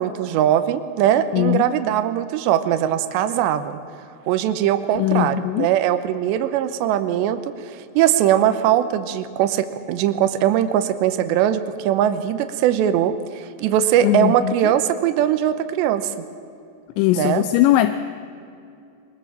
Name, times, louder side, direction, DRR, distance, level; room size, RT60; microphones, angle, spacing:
voice 1, 0.0-3.7 4.3-7.4 8.0-13.2 13.6-16.1 17.1-17.5, right 11 dB, 85° right, 11 dB, 3.1 m, -20 dB
voice 2, 1.3-1.6 5.0-5.7 14.0-14.7 17.0-18.0, left 13 dB, 85° left, 10 dB, 2.9 m, -20 dB
22.5 x 21.0 x 7.4 m, 2.6 s
omnidirectional pair, 5.2 m